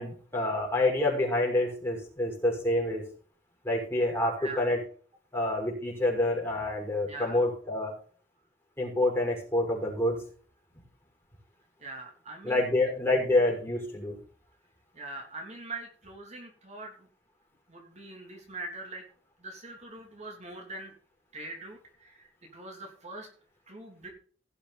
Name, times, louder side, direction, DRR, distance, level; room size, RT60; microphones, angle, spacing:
voice 1, 0.0-3.0 3.6-4.8 5.3-7.9 8.8-10.2 12.4-14.2, left 1 dB, 15° left, -1 dB, 5.9 m, -27 dB
voice 2, 7.0-7.4 11.8-12.7 14.9-17.1 17.7-19.0 19.4-20.9 21.3-23.3 23.7-24.1, right 2 dB, 40° right, 1 dB, 3.2 m, -42 dB
17.5 x 7.0 x 4.2 m, 0.43 s
head